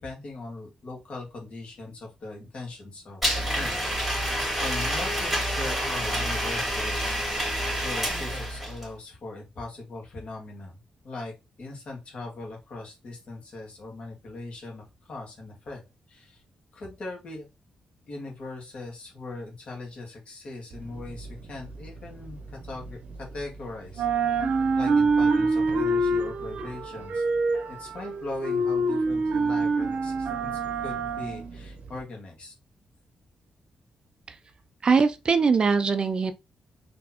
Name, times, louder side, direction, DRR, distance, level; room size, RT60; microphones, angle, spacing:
voice 1, 0.0-3.2 3.5-3.9 4.6-7.2 7.8-10.7 11.0-11.3 11.6-14.8 15.1-15.8 16.1-16.4 16.7-17.5 18.1-23.0 23.3-24.0 24.8-27.2 27.7-30.5 30.8-32.5, left 2 dB, 55° left, 1.7 m, -39 dB
Domestic sounds home sounds, 3.2-8.9, equal, ahead, 2.5 m, -28 dB
sound 1, 20.7-23.6 23.9-32.0, right 3 dB, 70° right, 0.7 m, -26 dB
voice 2, 34.8-36.3, right 5 dB, 40° right, 0.3 m, -22 dB
4.1 x 3.2 x 2.9 m
wide cardioid pair, 130°, 2 cm